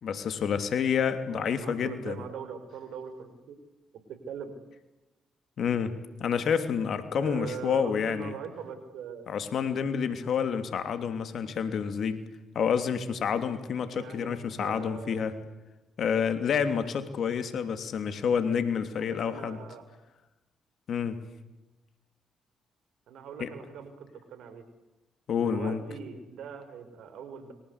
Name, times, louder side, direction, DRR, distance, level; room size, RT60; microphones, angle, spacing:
voice 1, 0.0-2.2 5.6-8.3 9.3-12.2 12.5-15.4 16.0-19.6 20.9-21.2 23.4-23.5 25.3-25.8, left 7 dB, 60° left, 10 dB, 3.1 m, -29 dB
voice 2, 1.3-3.6 4.1-4.5 7.2-9.3 13.9-15.2 19.0-19.8 23.1-24.6 25.4-27.5, right 7 dB, 70° right, 10 dB, 5.3 m, -41 dB
29.5 x 24.0 x 8.4 m, 1.0 s
hypercardioid pair, 50°, 0 cm